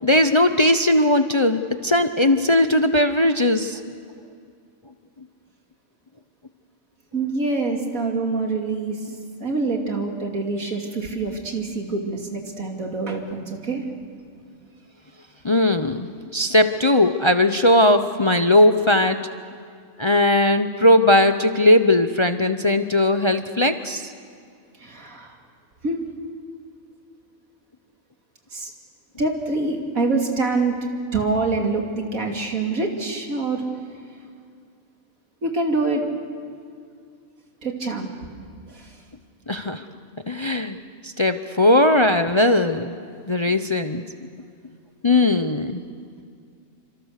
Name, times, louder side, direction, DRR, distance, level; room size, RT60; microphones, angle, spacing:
voice 1, 0.0-3.8 15.4-16.1 16.3-19.2 20.0-24.1 39.5-39.8 40.3-40.8 41.0-42.9 43.3-44.0 45.0-45.8, left 1 dB, 30° left, 9 dB, 0.6 m, -18 dB
voice 2, 7.1-9.1 9.4-13.8 24.8-25.4 25.8-26.1 28.5-28.7 29.2-30.8 31.1-33.6 35.4-36.0 37.6-38.1 38.7-38.9, right 3 dB, 90° right, 2 dB, 3.2 m, -25 dB
28.5 x 26.0 x 6.6 m, 2.2 s
omnidirectional pair, 1.4 m